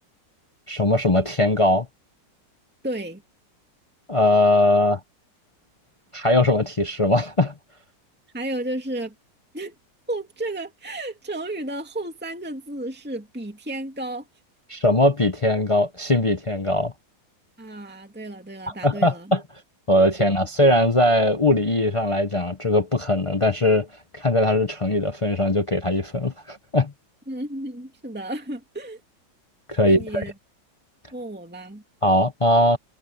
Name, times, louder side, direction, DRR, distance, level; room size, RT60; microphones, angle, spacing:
voice 1, 0.7-1.9 4.1-5.0 6.1-7.5 14.7-16.9 18.8-19.4 19.9-23.9 24.1-26.9 29.7-30.2 32.0-32.8, left 1 dB, 55° left, 0.3 m, -20 dB
voice 2, 2.8-3.2 8.3-9.1 9.5-9.8 10.1-14.3 17.6-19.3 27.3-29.0 29.8-30.3 31.1-31.8, right 1 dB, 5° right, 2.2 m, -32 dB
omnidirectional pair, 2.0 m